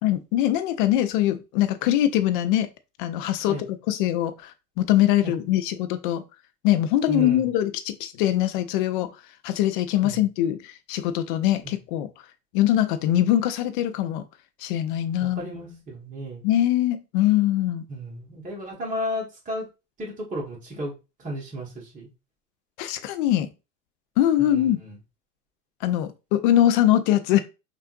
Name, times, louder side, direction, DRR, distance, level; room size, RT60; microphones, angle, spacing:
voice 1, 0.0-2.7 3.0-6.2 6.6-9.1 9.4-12.1 12.5-14.2 14.6-15.5 16.4-17.8 22.8-23.5 24.2-24.8 25.8-27.4, left 12 dB, 35° left, 0.4 m, -22 dB
voice 2, 7.1-7.4 10.0-10.2 11.6-11.7 15.2-16.4 17.9-19.7 20.0-20.9 21.2-22.1 24.4-25.0, equal, 15° right, 1.5 m, -33 dB
5.5 x 2.6 x 2.6 m
figure-of-eight pair, 90°, 49 cm